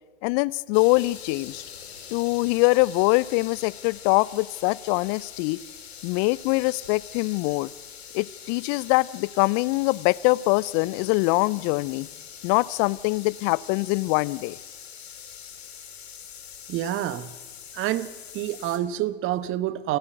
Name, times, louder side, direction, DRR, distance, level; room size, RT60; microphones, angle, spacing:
voice 1, 0.2-1.6 2.1-5.6 6.0-7.7 8.1-12.1 12.4-14.6, left 23 dB, 50° left, 22 dB, 0.6 m, -23 dB
sound 1, 0.7-18.8, left 8 dB, 80° left, 3.3 m, -43 dB
voice 2, 16.7-17.3 17.7-20.0, right 13 dB, 40° right, 16 dB, 1.2 m, -28 dB
28.5 x 11.5 x 9.1 m, 1.4 s
hypercardioid pair, 90°, 31 cm